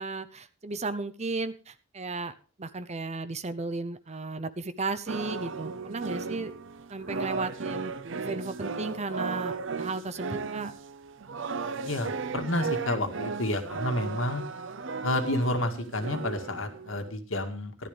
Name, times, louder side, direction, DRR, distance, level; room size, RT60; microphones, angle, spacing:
voice 1, 0.0-6.5 6.9-10.7, right 3 dB, 35° right, 12 dB, 0.9 m, -34 dB
sound 1, 5.1-17.1, right 4 dB, 70° right, 0.8 m, -35 dB
voice 2, 11.8-14.4 15.0-17.9, left 1 dB, 80° left, 6 dB, 2.0 m, -30 dB
14.5 x 11.5 x 3.5 m, 0.37 s
head